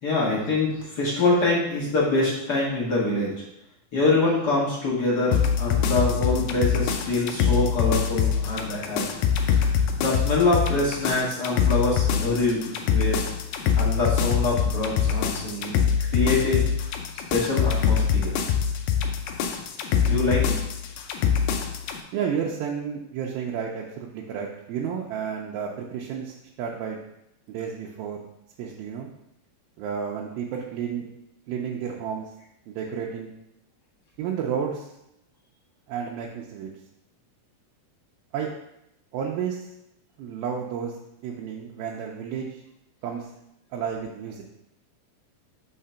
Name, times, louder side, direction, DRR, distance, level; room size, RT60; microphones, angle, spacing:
voice 1, 0.0-3.3 3.9-9.0 9.5-9.6 10.0-13.1 13.8-15.8 16.1-16.7 17.3-18.3 20.0-20.5, left 2 dB, 55° left, -7 dB, 1.1 m, -25 dB
sound 1, 5.3-22.0, left 7 dB, 80° left, 1.9 m, -24 dB
voice 2, 22.1-27.0 27.5-28.2 28.6-29.1 29.8-31.1 31.5-32.3 32.7-33.3 34.2-34.9 35.9-36.7 38.3-38.5 39.1-39.6 40.2-40.9 41.2-42.6 43.0-43.3 43.7-44.4, right 7 dB, 80° right, -1 dB, 2.4 m, -31 dB
5.8 x 3.8 x 5.6 m, 0.85 s
omnidirectional pair, 4.3 m